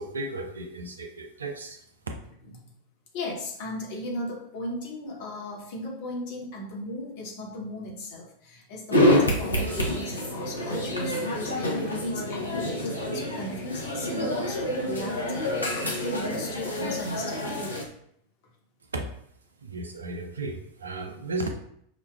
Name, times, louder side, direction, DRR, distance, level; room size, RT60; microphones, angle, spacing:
voice 1, 0.0-1.8 18.9-19.0 19.6-21.5, right 2 dB, 70° right, 4 dB, 0.5 m, -34 dB
voice 2, 3.1-17.7, left 1 dB, 50° left, -2 dB, 1.0 m, -36 dB
sound 1, 8.9-17.8, left 1 dB, 80° left, 0.7 m, -27 dB
6.0 x 2.2 x 2.2 m, 0.69 s
figure-of-eight pair, 90°, 0 cm